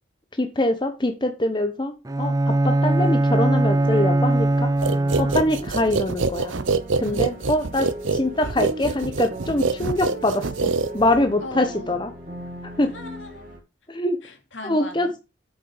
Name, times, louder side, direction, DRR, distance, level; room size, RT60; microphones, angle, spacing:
voice 1, 0.3-6.5 7.0-12.1 12.6-12.9 13.9-14.2 14.6-15.2, left 1 dB, 25° left, 0.9 m, -24 dB
Bowed string instrument, 2.1-5.8, right 2 dB, 20° right, 0.5 m, -21 dB
sound 1, 3.3-13.6, right 2 dB, 45° right, 2.6 m, -38 dB
sound 2, 4.8-11.3, right 3 dB, 85° right, 0.9 m, -25 dB
voice 2, 7.0-7.4 11.4-12.0 12.8-13.5 14.2-15.1, left 2 dB, 75° left, 2.6 m, -38 dB
8.2 x 6.6 x 4.9 m
head